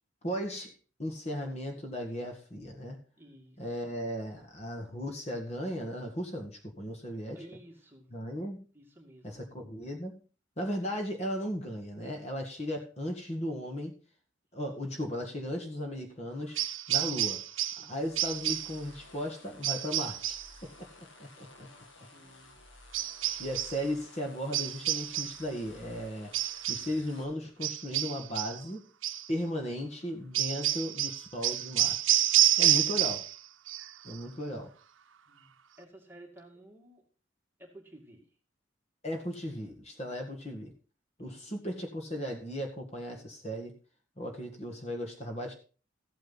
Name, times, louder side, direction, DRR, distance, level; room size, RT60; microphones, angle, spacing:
voice 1, 0.2-0.7 1.0-3.0 3.6-7.4 8.1-8.6 9.2-10.2 10.6-14.0 14.5-16.6 16.9-17.4 17.9-21.3 21.6-21.7 23.4-26.3 26.7-28.8 29.3-32.2 32.6-33.2 34.0-34.7 39.0-40.7 41.2-43.8 44.2-45.5, equal, 35° left, 3 dB, 1.8 m, -36 dB
voice 2, 3.2-3.8 7.3-8.1 8.7-9.5 17.8-18.0 22.1-22.6 35.3-37.1 37.6-38.3 41.2-41.6, right 1 dB, 10° right, 1 dB, 2.2 m, -54 dB
sound 1, 16.6-17.9 18.2-18.8 19.6-20.5 22.9-23.8 24.5-25.5 26.3-27.0 27.6-28.6 29.0-29.3 30.3-33.4 33.7-34.2, right 13 dB, 85° right, 0.7 m, -29 dB
sound 2, 17.9-27.2, left 2 dB, 75° left, 2.2 m, -55 dB
14.0 x 8.9 x 4.0 m, 0.37 s
head